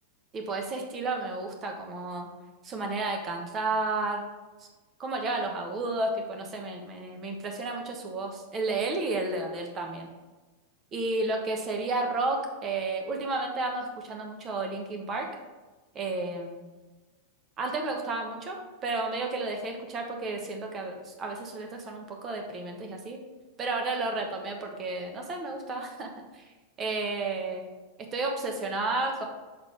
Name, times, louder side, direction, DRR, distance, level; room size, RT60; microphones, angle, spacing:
voice 1, 0.3-2.3 2.6-4.3 5.0-10.1 10.9-15.3 15.9-16.7 17.6-23.2 23.6-26.4 26.8-27.6 28.0-29.2, right 3 dB, 25° right, 2 dB, 1.1 m, -32 dB
6.8 x 4.0 x 3.6 m, 1.2 s
figure-of-eight pair, 90°, 0 cm